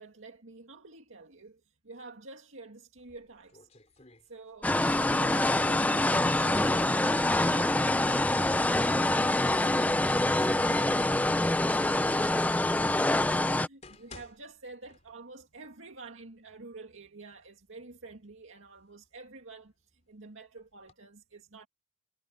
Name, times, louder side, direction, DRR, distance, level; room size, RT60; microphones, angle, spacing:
voice 1, 0.0-3.7 4.2-21.7, right 3 dB, 80° right, 2.2 m, -49 dB
sound 1, 3.0-4.9 5.1-6.6 7.7-9.7 10.3-11.2 12.0-12.1 12.8-12.9 13.5-15.5 15.8-15.9 16.6-16.7 17.1-17.7 18.3-19.9 20.6-20.9, left 3 dB, 30° left, 4.4 m, -56 dB
sound 2, 4.6-13.7, left 1 dB, 5° left, 0.4 m, -25 dB
head